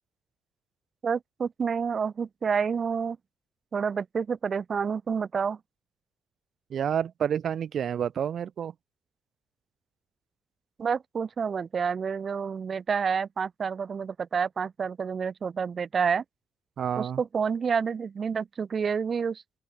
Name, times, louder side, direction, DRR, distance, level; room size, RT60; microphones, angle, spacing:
voice 1, 1.0-3.2 3.7-5.6 10.8-16.2 17.0-19.4, right 6 dB, 45° right, 1.8 m, -29 dB
voice 2, 6.7-8.7 16.8-17.2, right 8 dB, 60° right, 7.5 m, -29 dB
open air
cardioid pair, 90°, 0 cm